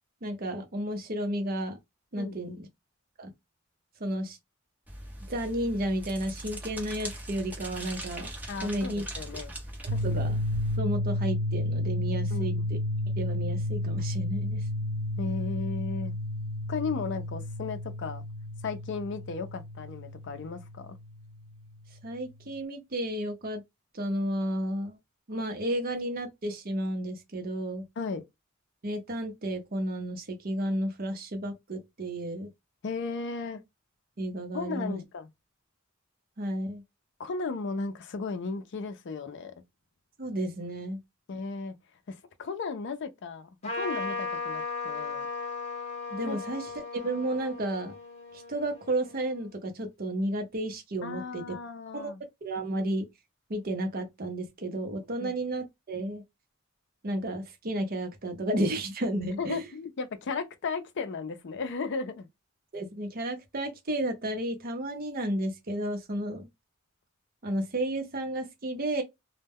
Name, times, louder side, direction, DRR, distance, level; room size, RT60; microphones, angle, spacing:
voice 1, 0.2-1.8 2.1-2.7 3.2-3.3 4.0-4.4 5.3-8.3 8.6-9.0 10.0-10.4 10.8-12.8 13.2-14.6 22.0-23.6 23.9-25.0 25.3-27.8 28.8-32.5 34.2-35.0 36.4-36.8 40.2-41.0 46.1-48.0 48.3-51.6 51.9-52.1 52.4-53.1 53.5-56.2 57.0-59.6 62.7-66.5 67.4-69.0, right 1 dB, 45° right, 0.7 m, -32 dB
voice 2, 2.2-2.6 8.5-9.5 9.9-10.2 12.3-12.6 15.2-16.1 16.7-18.2 18.6-21.0 28.0-28.2 32.8-33.6 34.5-35.3 37.2-39.5 41.3-41.7 42.1-43.5 43.8-45.3 46.2-46.4 51.0-52.2 55.2-55.3 59.4-62.3, left 4 dB, 60° left, 0.5 m, -35 dB
Pages Flipping, 4.9-10.8, right 1 dB, 10° right, 0.7 m, -40 dB
sound 1, 9.9-21.7, left 1 dB, 85° right, 0.4 m, -32 dB
Trumpet, 43.6-49.5, left 3 dB, 30° left, 0.9 m, -37 dB
2.1 x 2.1 x 3.4 m
head